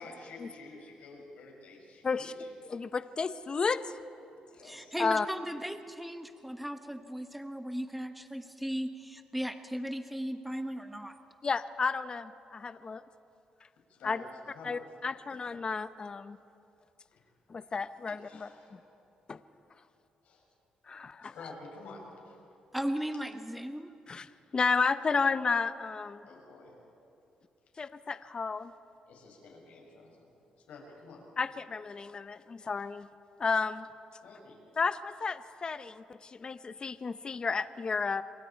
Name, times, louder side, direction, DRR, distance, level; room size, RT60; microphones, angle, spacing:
voice 1, 0.0-2.5 4.4-5.0 13.9-14.7 17.1-17.2 18.1-19.0 20.2-20.4 21.2-22.4 26.2-26.7 29.1-30.2 30.7-31.2 34.2-34.6, left 3 dB, 75° left, 0 dB, 6.4 m, -50 dB
voice 2, 2.7-4.0 5.0-5.3 11.4-13.0 14.0-14.2 14.6-16.4 17.5-18.5 19.3-19.4 20.9-21.3 24.1-24.3 24.5-26.2 27.8-28.7 31.4-33.1 33.4-33.9 34.8-38.2, left 4 dB, 35° left, 12 dB, 0.7 m, -32 dB
voice 3, 4.6-11.2 22.7-24.0, equal, ahead, 7 dB, 1.1 m, -37 dB
27.5 x 23.5 x 4.6 m, 2.7 s
cardioid pair, 75°, 2 cm